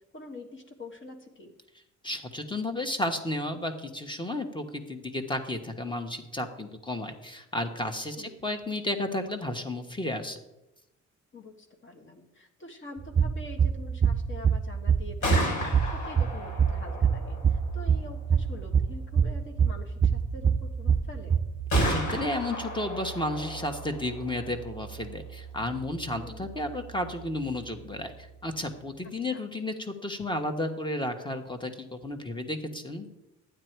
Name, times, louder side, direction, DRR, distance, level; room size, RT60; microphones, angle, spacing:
voice 1, 0.0-1.5 8.1-8.4 11.3-15.6 15.9-21.4 26.2-26.5 29.3-29.4, left 2 dB, 40° left, 3 dB, 1.7 m, -45 dB
voice 2, 2.0-10.4 21.7-33.1, left 1 dB, 15° left, 6 dB, 1.4 m, -33 dB
sound 1, 13.0-22.0, right 7 dB, 25° right, 0.4 m, -25 dB
Gunshot gunfire, 15.0-28.8, left 1 dB, 70° left, 3.7 m, -37 dB
12.0 x 9.2 x 4.6 m, 0.94 s
cardioid pair, 90°, 30 cm